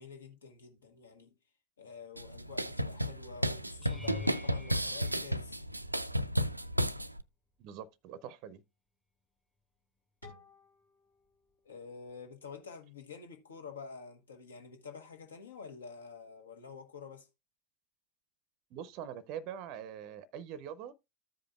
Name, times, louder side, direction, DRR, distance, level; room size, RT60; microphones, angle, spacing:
voice 1, 0.0-1.3 1.8-5.6 11.6-17.3, left 5 dB, 65° left, 1.4 m, -48 dB
sound 1, 2.2-7.2, equal, 85° right, 0.4 m, -33 dB
sound 2, 3.8-6.1 6.8-7.2 7.6-7.7 12.1-12.2, left 3 dB, 5° left, 0.7 m, -48 dB
voice 2, 7.6-8.6 18.7-20.9, right 9 dB, 40° right, 0.6 m, -43 dB
sound 3, 10.2-13.1, left 3 dB, 85° left, 2.7 m, -59 dB
14.5 x 5.0 x 2.3 m
figure-of-eight pair, 90°, 0 cm